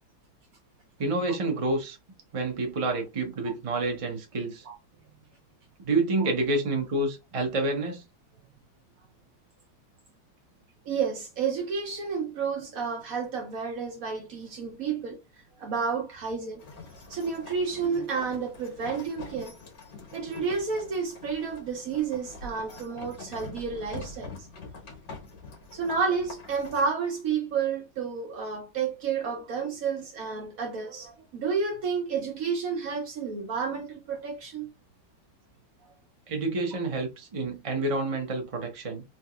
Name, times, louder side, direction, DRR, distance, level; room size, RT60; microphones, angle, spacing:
voice 1, 1.0-2.0 2.3-4.6 5.8-8.0 36.3-39.0, right 2 dB, 45° right, 0.4 m, -28 dB
voice 2, 10.8-15.2 15.6-16.6 17.1-19.6 20.1-24.5 25.7-34.7, right 5 dB, 60° right, 0.9 m, -31 dB
sound 1, 16.6-26.9, left 3 dB, 65° left, 1.9 m, -45 dB
3.7 x 2.9 x 2.3 m
omnidirectional pair, 2.0 m